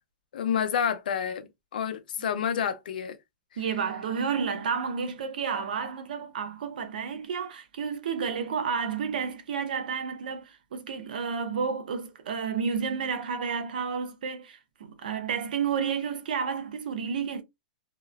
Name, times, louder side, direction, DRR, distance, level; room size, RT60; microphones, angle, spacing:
voice 1, 0.3-3.2, left 8 dB, 80° left, 0.6 m, -29 dB
voice 2, 3.6-17.4, right 6 dB, 80° right, 0.6 m, -31 dB
2.9 x 2.0 x 2.3 m
supercardioid pair, 160°, 5 cm